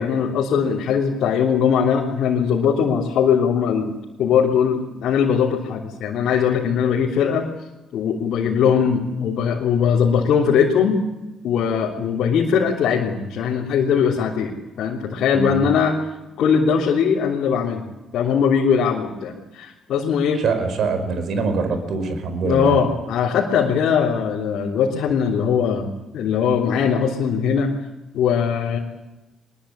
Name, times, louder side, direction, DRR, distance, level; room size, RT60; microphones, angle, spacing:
voice 1, 0.0-7.5 7.9-11.0 11.4-14.5 14.8-16.0 16.4-17.8 18.1-20.4 22.4-27.7 28.1-28.8, left 7 dB, 70° left, -3 dB, 3.3 m, -20 dB
voice 2, 20.3-22.7, right 4 dB, 65° right, 8 dB, 5.0 m, -23 dB
23.5 x 21.5 x 8.7 m, 1.0 s
hypercardioid pair, 45°, 0 cm